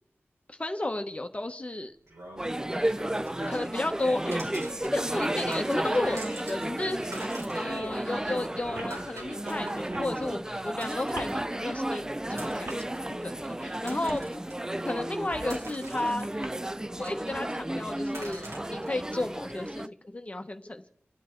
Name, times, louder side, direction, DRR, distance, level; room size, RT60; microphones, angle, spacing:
voice 1, 0.5-1.9 2.7-3.0 3.5-4.4 4.9-12.7 13.2-14.4 14.8-16.3 17.0-20.9, left 2 dB, 30° left, 5 dB, 1.1 m, -33 dB
sound 1, 2.1-2.2 4.0-4.1 4.4-4.5 5.1-5.3 5.5-5.6 5.8-8.0 8.7-9.0 9.9-10.1 11.1-11.4 12.2-12.3 12.6-12.8 14.1-14.3 14.7-15.6 16.2-16.4, right 1 dB, 45° right, 2.8 m, -40 dB
sound 2, 2.1-3.8 4.3-5.2 5.5-6.7 6.9-11.5 12.3-12.9 13.5-14.5 15.0-16.6 17.0-17.7 18.1-18.9, right 1 dB, 90° right, 5.9 m, -45 dB
sound 3, 2.4-19.9, right 1 dB, 15° right, 0.5 m, -33 dB
29.5 x 10.0 x 4.5 m, 0.74 s
wide cardioid pair, 70°, 5 cm